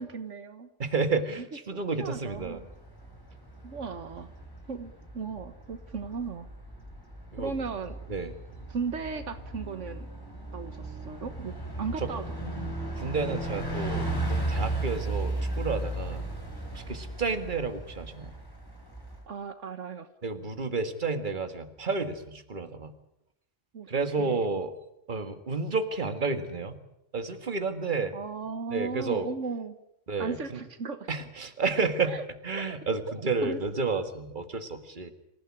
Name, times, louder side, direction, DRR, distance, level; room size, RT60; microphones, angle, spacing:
voice 1, 0.0-0.7 1.7-2.7 3.6-4.3 4.7-6.5 7.4-8.0 8.7-10.1 10.5-12.7 19.3-20.1 23.7-23.9 24.2-24.5 28.1-29.8 30.2-31.1 32.0-32.2 32.6-33.0 33.4-33.6, right 5 dB, 75° right, 10 dB, 1.6 m, -36 dB
voice 2, 0.8-2.6 7.3-7.5 8.1-8.3 12.0-12.1 13.0-16.2 16.7-18.3 20.2-22.9 23.9-24.7 25.1-26.8 27.1-28.2 28.7-29.3 30.1-30.6 31.1-32.1 32.4-35.1, right 4 dB, 40° right, 8 dB, 2.0 m, -31 dB
Bus, 2.3-19.2, right 2 dB, 15° left, 4.4 m, -36 dB
26.5 x 16.0 x 9.8 m, 0.83 s
omnidirectional pair, 1.3 m